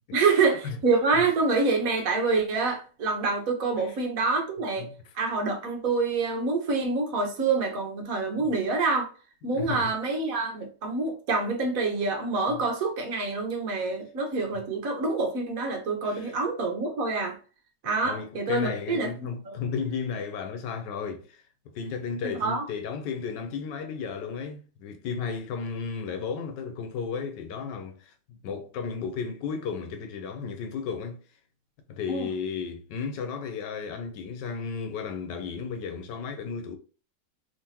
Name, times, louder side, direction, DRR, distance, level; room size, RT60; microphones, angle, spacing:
voice 1, 0.1-4.9 5.1-9.1 9.4-17.4 17.8-19.6 22.4-22.6 32.1-32.3, right 3 dB, 55° right, 1.3 m, -26 dB
voice 2, 9.6-9.9 12.5-12.6 16.0-16.2 18.0-21.4 21.7-28.1 28.4-31.2 31.9-36.8, left 6 dB, 80° left, 1.3 m, -34 dB
3.6 x 3.2 x 2.8 m
omnidirectional pair, 1.9 m